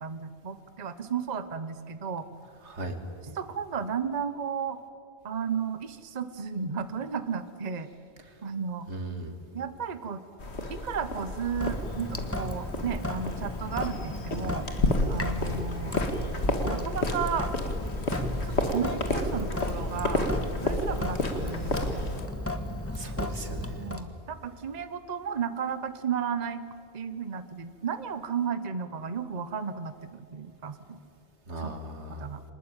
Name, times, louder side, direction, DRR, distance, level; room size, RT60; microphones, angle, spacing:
voice 1, 0.0-2.3 3.2-4.8 5.2-7.9 8.4-8.9 9.5-10.2 10.7-14.7 15.1-16.0 16.6-17.5 18.6-20.3 20.6-22.0 23.8-26.7 26.9-31.0 31.6-32.4, right 6 dB, 40° right, 11 dB, 1.0 m, -33 dB
voice 2, 2.7-3.0 8.9-9.3 23.0-23.8 31.5-32.2, right 2 dB, 85° right, 6 dB, 2.4 m, -37 dB
sound 1, 10.4-22.3, left 2 dB, 70° left, 2.4 m, -31 dB
Sink (filling or washing) / Drip, 11.6-24.0, left 1 dB, 10° left, 1.4 m, -35 dB
25.5 x 20.0 x 8.9 m, 2.5 s
omnidirectional pair, 1.1 m